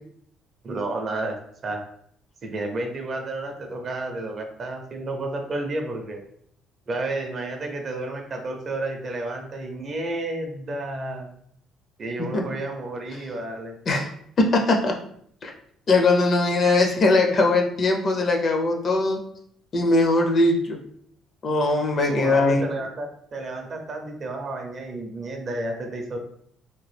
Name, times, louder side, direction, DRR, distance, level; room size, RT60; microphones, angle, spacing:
voice 1, 0.6-1.3 1.6-1.8 2.4-6.2 6.9-11.3 12.0-13.7 22.0-26.2, right 2 dB, 35° right, 3 dB, 0.5 m, -31 dB
voice 2, 14.4-15.0 15.4-15.5 15.9-19.2 19.7-20.8 21.4-22.7, left 2 dB, 35° left, 2 dB, 0.5 m, -20 dB
2.9 x 2.2 x 3.2 m, 0.65 s
cardioid pair, 140°, 0 cm